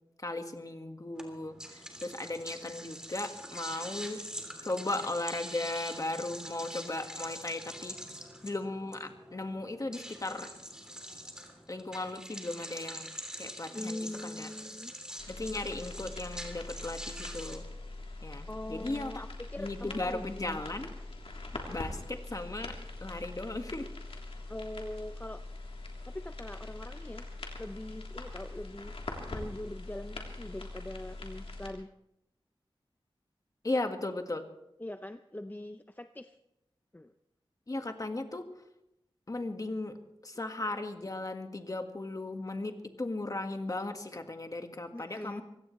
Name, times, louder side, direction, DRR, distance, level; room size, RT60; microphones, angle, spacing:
voice 1, 0.2-4.2 4.6-8.0 8.4-10.5 11.7-13.1 13.4-14.5 15.3-17.7 18.2-19.1 19.6-20.9 21.7-22.8 23.0-23.9 33.6-34.4 37.7-38.5 39.3-40.0 40.2-45.4, left 2 dB, 40° left, 5 dB, 1.7 m, -36 dB
sound 1, 1.2-17.6, equal, 5° right, 3.2 m, -44 dB
sound 2, 5.7-11.3, equal, 25° right, 5.2 m, -60 dB
voice 2, 13.7-14.9 18.5-20.6 21.4-21.6 24.5-25.4 26.1-27.3 27.6-28.9 29.3-31.9 34.8-36.4 36.9-37.1 44.9-45.4, left 1 dB, 20° left, 9 dB, 0.6 m, -42 dB
sound 3, 15.2-31.7, left 2 dB, 90° left, 3.3 m, -43 dB
24.5 x 17.0 x 3.2 m, 0.84 s
wide cardioid pair, 80°, 10 cm